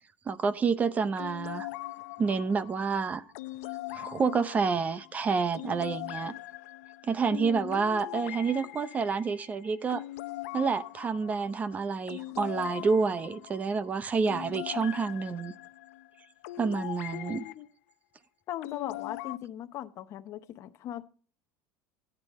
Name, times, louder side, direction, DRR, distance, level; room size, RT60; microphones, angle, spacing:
voice 1, 0.3-1.7 2.2-3.2 3.9-6.3 7.0-10.0 10.5-15.5 16.6-17.4, right 5 dB, 20° right, 0.6 m, -28 dB
sound 1, 1.2-17.5 18.6-19.4, left 17 dB, 90° left, 0.6 m, -41 dB
voice 2, 7.3-7.8 17.1-17.7 18.5-21.0, left 12 dB, 40° left, 0.8 m, -38 dB
14.0 x 9.1 x 4.2 m
cardioid pair, 160°, 8 cm